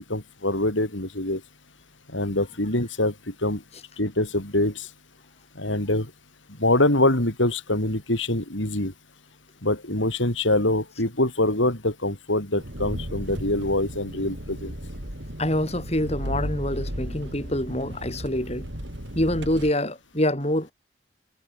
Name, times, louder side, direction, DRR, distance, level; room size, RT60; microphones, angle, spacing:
voice 1, 0.0-1.4 2.1-3.6 4.0-4.9 5.6-6.1 6.6-8.9 9.6-14.7, left 1 dB, 80° left, 6.2 m, -24 dB
Engine, 12.6-19.7, equal, 65° right, 7.7 m, -35 dB
voice 2, 15.4-18.7 19.1-20.7, left 1 dB, 35° left, 7.2 m, -26 dB
head